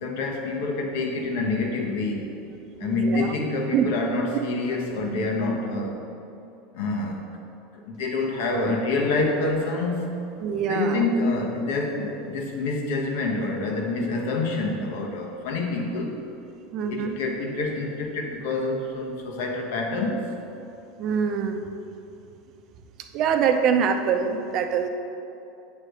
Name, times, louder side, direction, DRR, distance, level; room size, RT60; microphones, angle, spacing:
voice 1, 0.0-2.4 2.8-6.0 6.7-7.2 7.7-10.2 10.7-16.2 16.9-20.3, left 2 dB, 75° left, 1 dB, 1.1 m, -27 dB
voice 2, 2.8-3.3 3.7-3.9 10.4-11.0 16.7-17.2 21.0-21.7 23.1-24.9, right 7 dB, 50° right, 6 dB, 0.7 m, -24 dB
8.5 x 3.3 x 6.4 m, 2.8 s
supercardioid pair, 110°, 0 cm